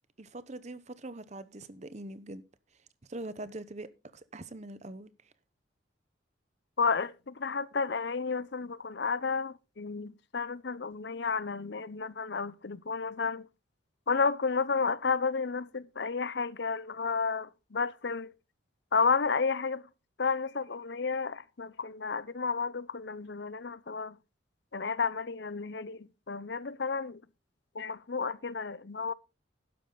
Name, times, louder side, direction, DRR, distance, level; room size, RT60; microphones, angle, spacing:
voice 1, 0.2-2.4 3.1-3.9 4.3-5.1, right 2 dB, 35° right, 0.9 m, -42 dB
voice 2, 6.8-13.5 14.1-18.3 18.9-19.9 20.2-24.2 24.7-27.2 27.7-29.1, left 5 dB, 60° left, 0.7 m, -32 dB
12.0 x 9.8 x 3.9 m
head